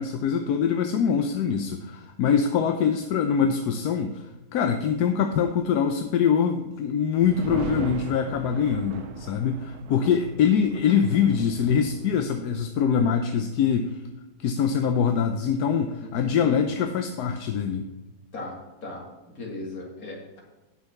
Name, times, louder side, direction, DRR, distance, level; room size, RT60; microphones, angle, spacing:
voice 1, 0.0-4.2 4.5-14.0 14.4-17.9, left 7 dB, 85° left, 6 dB, 1.2 m, -24 dB
sound 1, 7.2-12.6, right 7 dB, 75° right, 1.2 m, -38 dB
voice 2, 16.0-16.6 18.3-18.6 18.8-19.0 19.3-20.4, left 2 dB, 65° left, -1 dB, 2.8 m, -37 dB
9.7 x 6.3 x 5.9 m, 1.1 s
omnidirectional pair, 1.6 m